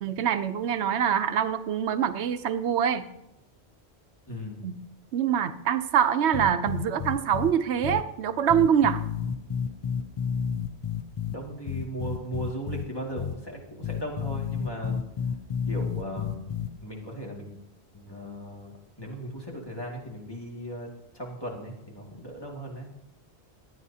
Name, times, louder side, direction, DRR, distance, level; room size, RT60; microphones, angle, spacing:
voice 1, 0.0-3.0 4.6-4.7 5.1-9.0, right 8 dB, 80° right, 10 dB, 0.9 m, -24 dB
voice 2, 4.3-4.6 11.3-15.0 15.7-17.6 17.9-20.9 21.1-22.9, equal, 20° left, -2 dB, 2.1 m, -37 dB
sound 1, 6.3-7.5 7.8-8.0 8.5-11.3 11.7-12.8 13.2-13.3 13.8-16.7, left 7 dB, 40° left, 0.5 m, -30 dB
23.5 x 9.2 x 2.8 m, 0.89 s
omnidirectional pair, 1.1 m